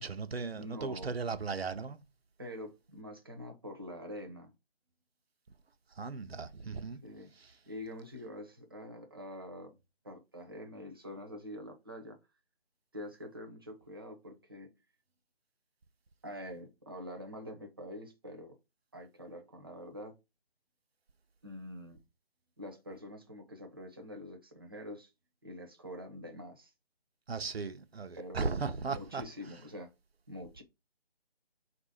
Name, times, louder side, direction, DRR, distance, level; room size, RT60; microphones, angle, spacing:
voice 1, 0.0-2.0 6.0-7.0 27.3-29.2, right 4 dB, 75° right, 0.7 m, -36 dB
voice 2, 0.5-1.1 2.4-4.5 7.0-7.3 7.7-9.8 10.0-12.2 12.9-14.7 16.2-18.6 18.9-20.1 21.4-22.0 22.6-25.1 25.4-26.7 28.2-29.9 30.3-30.6, left 1 dB, 25° right, 0.6 m, -45 dB
4.1 x 2.6 x 4.0 m
figure-of-eight pair, 160°, 31 cm